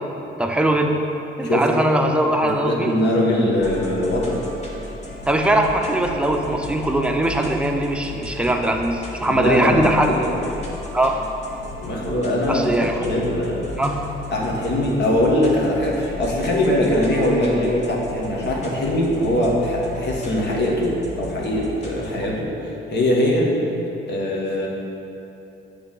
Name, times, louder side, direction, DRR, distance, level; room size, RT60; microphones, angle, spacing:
voice 1, 0.4-1.0 1.4-2.9 5.3-10.2 10.9-11.2 12.5-13.0 13.8-14.1, right 1 dB, 5° right, 3 dB, 0.6 m, -20 dB
voice 2, 2.4-4.4 9.3-10.5 11.8-12.7 13.0-13.7 14.3-23.6 24.1-24.7, left 1 dB, 60° left, -2 dB, 1.5 m, -21 dB
sound 1, 3.6-22.1, left 2 dB, 35° left, 1.7 m, -35 dB
8.6 x 3.5 x 5.6 m, 2.9 s
cardioid pair, 90°, 20 cm